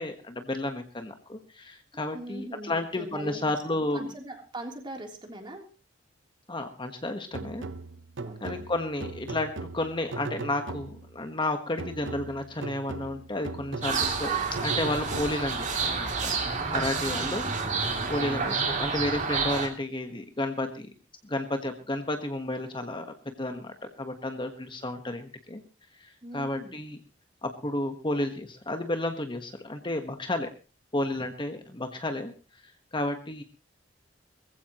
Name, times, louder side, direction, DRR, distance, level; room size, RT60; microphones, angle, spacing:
voice 1, 0.0-4.1 6.5-7.7 8.4-17.5 18.1-20.9 21.2-25.6 26.0-27.0 27.4-30.5 30.9-32.3 32.9-33.4, left 1 dB, 25° left, 6 dB, 1.4 m, -32 dB
voice 2, 2.1-5.6 8.2-8.7 17.1-17.6 18.1-18.6 26.2-26.7, right 1 dB, 25° right, 3 dB, 3.5 m, -41 dB
sound 1, 7.3-11.2 11.8-15.7, right 3 dB, 80° right, 0.9 m, -39 dB
sound 2, 13.8-19.7, right 4 dB, 40° right, 3.0 m, -29 dB
21.0 x 15.5 x 3.1 m, 0.33 s
head